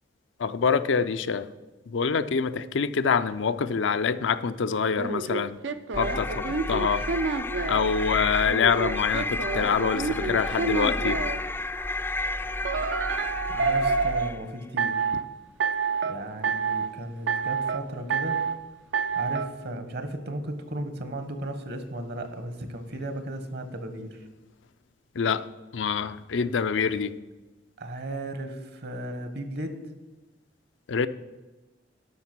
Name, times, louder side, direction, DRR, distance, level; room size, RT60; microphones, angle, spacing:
voice 1, 0.4-1.5 1.9-5.6 6.0-7.0 7.7-11.2 25.2-25.4 25.7-27.1 30.9-31.1, left 6 dB, 85° left, 12 dB, 0.5 m, -25 dB
sound 1, 5.0-7.9 8.5-11.4 12.7-14.3 14.8-15.2 15.6-16.1 16.4-16.9 17.3-17.8 18.1-18.6 18.9-19.5, right 5 dB, 80° right, 0.6 m, -28 dB
sound 2, 5.9-14.5, left 2 dB, 10° left, 0.4 m, -31 dB
voice 2, 13.5-15.1 16.0-18.4 19.1-24.3 27.8-29.8, right 1 dB, 60° right, 9 dB, 1.3 m, -35 dB
11.5 x 5.9 x 6.0 m, 1.2 s
head